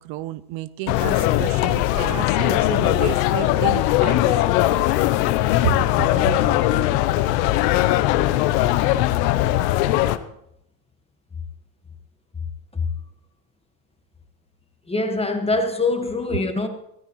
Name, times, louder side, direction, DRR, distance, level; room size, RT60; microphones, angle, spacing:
voice 1, 0.0-4.7 5.6-5.8 6.2-6.3, right 14 dB, 70° right, 0.7 m, -31 dB
sound 1, 0.9-10.2, left 15 dB, 90° left, 0.8 m, -20 dB
voice 2, 14.9-16.7, left 3 dB, 10° left, 1.5 m, -23 dB
15.5 x 14.0 x 3.1 m
supercardioid pair, 105°, 48 cm